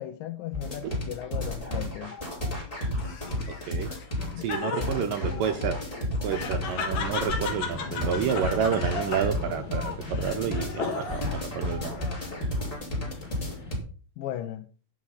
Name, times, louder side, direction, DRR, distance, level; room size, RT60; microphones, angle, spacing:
voice 1, 0.0-2.2 4.3-5.5 14.2-14.7, left 12 dB, 80° left, 2.1 m, -37 dB
sound 1, 0.5-13.8, left 1 dB, 10° left, 3.0 m, -32 dB
Laughter, 3.0-11.4 11.8-12.5, left 5 dB, 55° left, 2.4 m, -36 dB
voice 2, 4.4-5.8 6.2-12.0, right 8 dB, 80° right, 2.0 m, -30 dB
sound 2, 6.2-13.7, left 2 dB, 30° left, 3.6 m, -40 dB
10.0 x 6.2 x 5.6 m
omnidirectional pair, 4.6 m